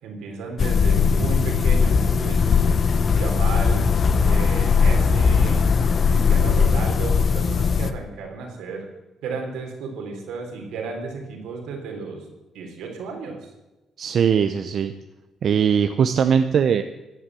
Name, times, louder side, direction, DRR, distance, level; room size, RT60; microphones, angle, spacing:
voice 1, 0.0-2.6 3.1-3.9 4.2-5.7 6.1-8.9 9.2-13.4, right 4 dB, 90° right, 2 dB, 3.6 m, -33 dB
sound 1, 0.6-7.9, left 5 dB, 45° left, 1.0 m, -19 dB
voice 2, 14.0-14.9 15.4-16.8, right 7 dB, 60° right, 9 dB, 0.7 m, -20 dB
15.0 x 8.6 x 7.6 m, 1.1 s
cardioid pair, 90°, 0 cm